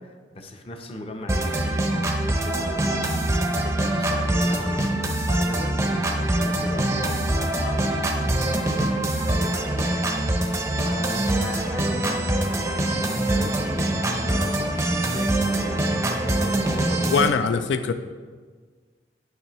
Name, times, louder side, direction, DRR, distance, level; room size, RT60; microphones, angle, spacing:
voice 1, 0.0-10.1 10.6-12.9 13.2-17.2 17.4-17.6, left 1 dB, 35° left, 5 dB, 0.6 m, -38 dB
sound 1, 1.3-17.3, right 1 dB, 15° right, 0.5 m, -24 dB
voice 2, 17.1-17.9, left 5 dB, 80° left, 10 dB, 0.3 m, -22 dB
9.5 x 6.0 x 2.9 m, 1.5 s
head